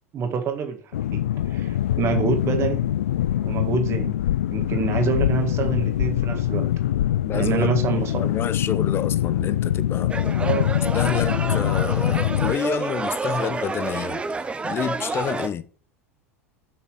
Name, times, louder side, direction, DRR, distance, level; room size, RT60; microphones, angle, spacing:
voice 1, 0.1-2.9 3.4-4.2 4.5-6.8 7.3-8.3 10.4-10.7, right 6 dB, 35° right, 1.9 m, -27 dB
sound 1, 0.9-12.6, left 12 dB, 65° left, 0.4 m, -23 dB
voice 2, 7.2-7.7 8.2-10.1 10.8-14.2 14.6-15.7, left 8 dB, 30° left, 0.9 m, -29 dB
sound 2, 10.1-15.5, right 4 dB, 15° right, 0.8 m, -29 dB
7.4 x 6.6 x 5.0 m
figure-of-eight pair, 80°, 8 cm